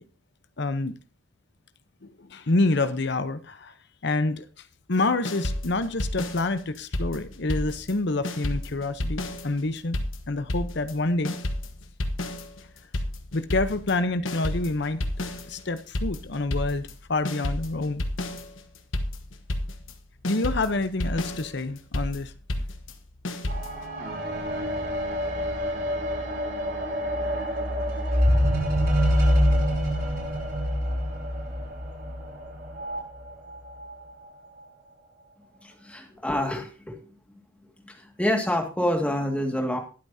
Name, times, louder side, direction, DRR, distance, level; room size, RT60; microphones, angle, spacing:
voice 1, 0.6-0.9 2.0-3.7 4.0-4.4 4.9-10.0 10.3-11.4 13.3-15.0 15.5-18.0 20.2-22.3, left 2 dB, 60° left, 12 dB, 0.9 m, -27 dB
sound 1, 5.2-8.0 8.2-23.9, left 1 dB, 80° left, 1.2 m, -31 dB
sound 2, 23.5-33.0 33.8-33.9, equal, 50° right, 5.1 m, -26 dB
voice 2, 35.6-37.0 37.8-39.8, left 1 dB, 5° left, 2 dB, 2.0 m, -27 dB
20.5 x 8.3 x 2.8 m, 0.36 s
head